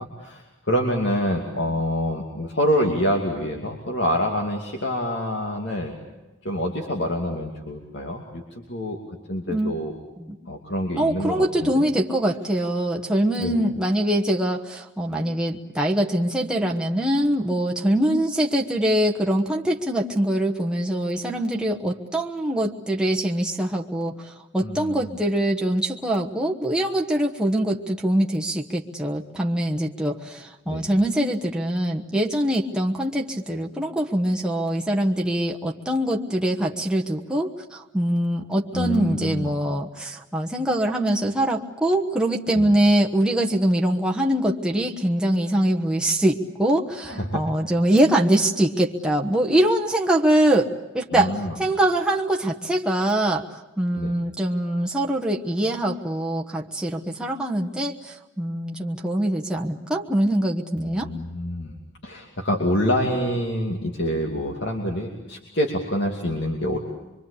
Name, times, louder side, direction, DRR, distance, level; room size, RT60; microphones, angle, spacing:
voice 1, 0.0-6.0 6.4-9.0 9.3-9.9 10.5-11.8 13.4-13.6 24.6-25.2 30.7-30.9 38.7-39.6 42.5-42.8 47.1-47.4 51.1-51.6 53.9-54.1 60.8-61.7 62.0-66.8, equal, 60° left, 1 dB, 2.7 m, -26 dB
voice 2, 11.0-51.3 51.6-61.1, right 1 dB, 5° right, -1 dB, 1.2 m, -23 dB
25.0 x 24.0 x 8.5 m, 1.1 s
head